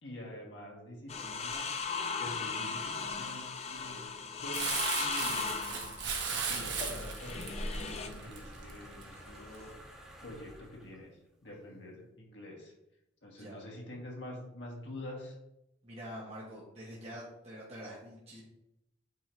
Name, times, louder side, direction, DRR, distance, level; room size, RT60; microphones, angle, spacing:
voice 1, 0.0-1.7 2.2-4.0 4.4-6.0 6.5-9.7 10.2-11.2 11.4-12.7 13.2-15.4, left 1 dB, 75° left, -2 dB, 1.8 m, -46 dB
sound 1, 1.1-8.2 9.2-9.7, left 5 dB, 35° left, 0.4 m, -37 dB
Crumpling crinkling, 4.5-9.1 9.5-9.6, right 5 dB, 70° right, 1.3 m, -36 dB
sound 2, 6.2-11.0, equal, 5° right, 1.2 m, -49 dB
voice 2, 15.8-18.4, equal, 30° right, -6 dB, 1.3 m, -46 dB
8.4 x 2.8 x 4.5 m, 0.86 s
head